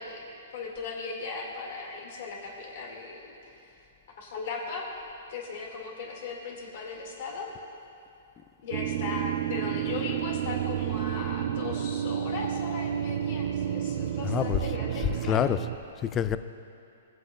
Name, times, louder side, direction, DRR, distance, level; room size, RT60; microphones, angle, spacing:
voice 1, 0.0-3.7 4.2-4.8 5.3-7.5 8.6-15.5, left 4 dB, 60° left, -1 dB, 2.0 m, -38 dB
sound 1, 8.7-15.8, right 10 dB, 55° right, 0.3 m, -31 dB
voice 2, 14.2-15.7 16.0-16.4, left 10 dB, 25° left, 12 dB, 0.3 m, -27 dB
18.0 x 7.6 x 2.3 m, 2.6 s
hypercardioid pair, 135°, 0 cm